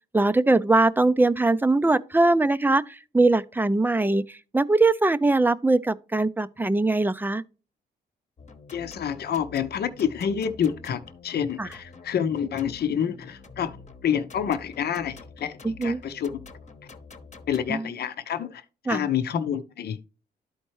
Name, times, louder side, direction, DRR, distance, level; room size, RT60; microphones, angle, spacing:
voice 1, 0.1-7.4 11.6-11.7 15.6-16.0 17.7-17.8 18.9-19.1, right 2 dB, 10° right, 0.5 m, -21 dB
sound 1, 8.4-17.7, left 4 dB, 40° left, 1.1 m, -47 dB
voice 2, 8.7-13.8 14.0-16.4 17.5-18.6 18.9-20.1, left 8 dB, 65° left, 0.8 m, -28 dB
12.5 x 4.4 x 3.1 m
cardioid pair, 85°, 18 cm